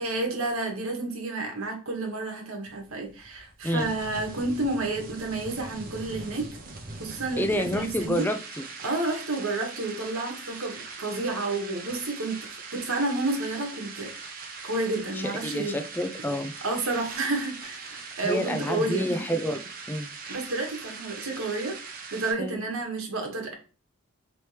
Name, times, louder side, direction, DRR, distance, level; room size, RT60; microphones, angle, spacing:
voice 1, 0.0-6.5 7.0-8.3 8.8-12.4 12.7-14.1 14.6-15.7 16.6-19.1 20.3-21.8 22.1-23.5, right 2 dB, 75° right, 1 dB, 1.2 m, -30 dB
sound 1, 2.7-22.3, right 4 dB, 40° right, 0.8 m, -41 dB
voice 2, 7.4-8.4 15.1-16.5 18.2-20.1 22.4-22.6, equal, 10° left, 7 dB, 0.4 m, -29 dB
4.3 x 3.1 x 3.2 m, 0.35 s
head